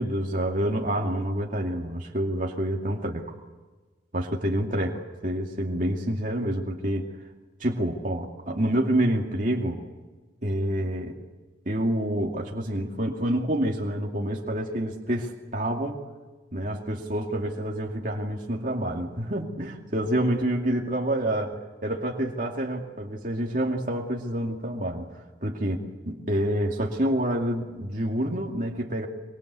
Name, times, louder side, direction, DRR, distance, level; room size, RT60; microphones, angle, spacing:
voice 1, 0.0-3.2 4.1-7.1 7.6-9.8 10.4-11.2 11.7-16.0 16.5-25.1 25.4-29.1, right 1 dB, 45° right, -1 dB, 2.5 m, -28 dB
25.5 x 24.5 x 8.3 m, 1.3 s
head